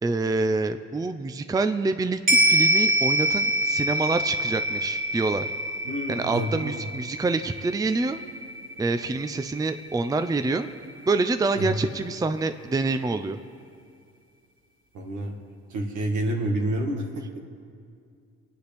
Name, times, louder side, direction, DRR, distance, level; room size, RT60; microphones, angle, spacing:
voice 1, 0.0-5.5 6.1-8.2 8.8-10.7 11.1-13.4, right 3 dB, 10° right, 9 dB, 0.5 m, -26 dB
sound 1, 2.3-10.8 11.2-11.3, equal, 30° right, 2.5 m, -26 dB
voice 2, 5.8-6.9 11.6-11.7 14.9-15.4 15.7-17.4, right 1 dB, 75° right, 2 dB, 1.8 m, -29 dB
28.0 x 9.5 x 3.5 m, 2.3 s
cardioid pair, 90°, 30 cm